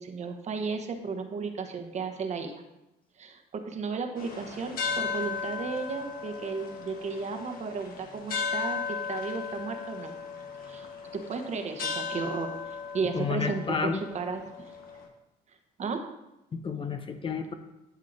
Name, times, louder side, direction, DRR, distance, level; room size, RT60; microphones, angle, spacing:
voice 1, 0.0-2.5 3.2-8.8 9.1-10.1 10.7-10.9 11.1-14.7 15.8-16.1, right 5 dB, 40° right, 5 dB, 1.0 m, -34 dB
sound 1, 4.2-15.1, left 5 dB, 60° left, 1.3 m, -36 dB
voice 2, 13.1-14.0 16.5-17.5, left 5 dB, 30° left, 7 dB, 0.7 m, -31 dB
12.0 x 6.5 x 2.7 m, 0.92 s
cardioid pair, 110°, 17 cm